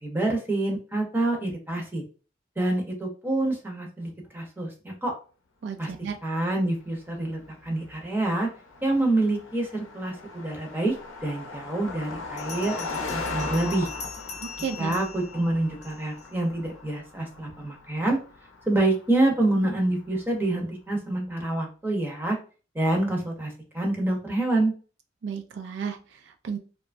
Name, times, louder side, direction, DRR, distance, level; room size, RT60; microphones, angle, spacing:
voice 1, 0.0-2.0 2.6-5.1 5.8-5.9 6.2-8.5 8.8-11.0 11.2-13.9 14.8-18.2 18.7-22.4 22.7-24.7, right 2 dB, 10° right, 0 dB, 0.6 m, -27 dB
voice 2, 5.6-6.2 14.4-15.0 25.2-26.6, right 6 dB, 65° right, 6 dB, 0.3 m, -33 dB
Car passing by, 6.6-20.3, left 3 dB, 85° left, 0.6 m, -39 dB
Bell, 11.2-11.3 12.4-16.3, left 5 dB, 35° left, 0.5 m, -41 dB
2.9 x 2.2 x 2.4 m, 0.36 s
head